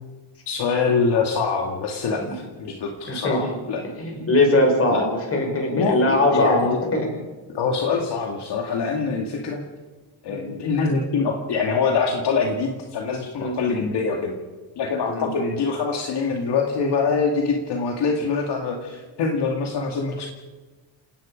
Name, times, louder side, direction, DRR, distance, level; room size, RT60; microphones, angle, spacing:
voice 1, 0.5-3.8 4.9-5.0 5.7-6.8 7.5-9.6 10.2-14.3 14.8-20.3, left 4 dB, 55° left, 1 dB, 2.3 m, -24 dB
voice 2, 3.1-3.4 4.0-6.6 6.9-7.1 9.0-9.1 10.3-10.5 13.4-13.5 15.1-15.3, left 1 dB, 30° left, 2 dB, 6.1 m, -21 dB
28.5 x 18.0 x 5.2 m, 1.3 s
cardioid pair, 140°, 48 cm